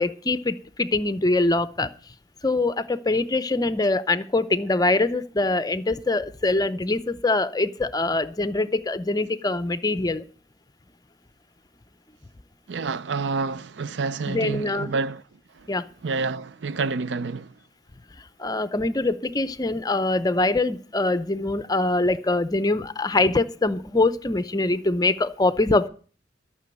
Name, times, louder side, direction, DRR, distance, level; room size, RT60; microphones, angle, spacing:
voice 1, 0.0-1.9 2.4-10.2 14.3-14.9 15.7-15.8 18.4-25.9, left 2 dB, 20° left, 0.7 m, -23 dB
voice 2, 12.7-15.2 15.6-15.7 16.0-17.5, right 4 dB, 80° right, 0.5 m, -28 dB
13.0 x 6.1 x 9.0 m
head